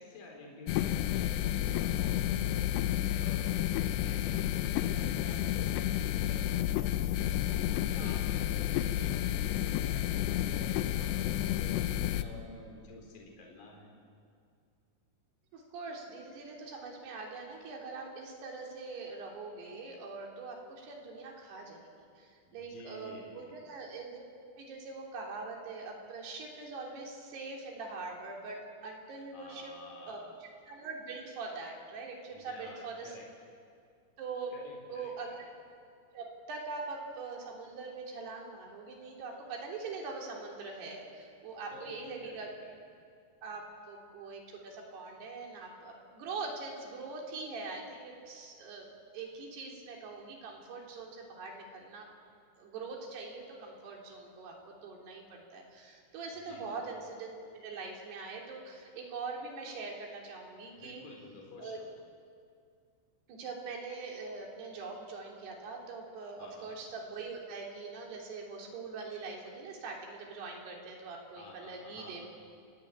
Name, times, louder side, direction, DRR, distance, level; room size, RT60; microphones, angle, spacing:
voice 1, 0.0-6.7 7.5-13.9 22.5-23.5 29.3-30.2 32.3-33.2 34.5-35.4 41.7-42.8 56.3-56.8 60.7-61.9 66.4-66.7 71.3-72.3, left 2 dB, 55° left, 0 dB, 5.7 m, -50 dB
sound 1, 0.7-12.2, left 12 dB, 85° left, 3.0 m, -31 dB
voice 2, 15.5-21.9 22.2-24.2 24.6-29.7 30.1-30.2 30.7-33.2 34.2-34.5 34.9-35.5 36.1-42.5 43.4-48.9 49.1-52.1 52.6-61.1 61.6-61.8 63.3-72.3, right 4 dB, 75° right, -1 dB, 5.4 m, -43 dB
29.5 x 17.5 x 8.8 m, 2.3 s
omnidirectional pair, 4.8 m